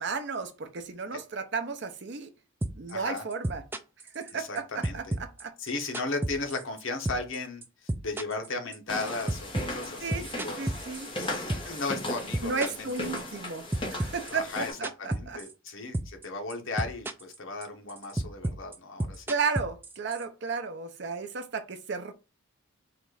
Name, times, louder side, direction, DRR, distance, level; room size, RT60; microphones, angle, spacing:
voice 1, 0.0-2.3 2.7-3.6 4.1-5.5 10.0-11.1 12.4-15.4 19.3-22.1, right 5 dB, 55° right, 0.6 m, -34 dB
sound 1, 2.6-2.9 3.2-4.6 4.8-6.8 7.1-7.4 7.6-11.8 12.1-13.5 13.7-15.7 15.9-16.2 16.5-17.4 17.6-20.2, right 1 dB, 10° right, 0.3 m, -31 dB
voice 2, 2.9-3.2 4.3-5.1 5.6-10.8 11.2-13.3 14.3-19.2, left 3 dB, 65° left, 1.0 m, -36 dB
sound 2, 8.9-14.7, left 1 dB, 25° left, 1.1 m, -37 dB
4.1 x 2.5 x 4.7 m
head